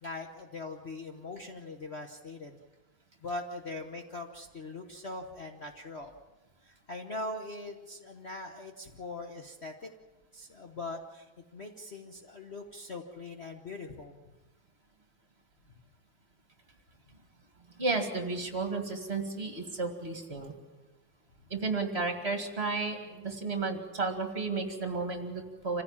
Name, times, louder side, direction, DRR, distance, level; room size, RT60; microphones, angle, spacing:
voice 1, 0.0-2.6 3.2-6.1 6.6-9.9 10.3-14.1, left 2 dB, 40° left, 3 dB, 1.2 m, -41 dB
voice 2, 17.8-20.5 21.5-25.8, right 3 dB, 30° right, 5 dB, 2.2 m, -33 dB
27.0 x 16.0 x 7.3 m, 1.2 s
omnidirectional pair, 2.2 m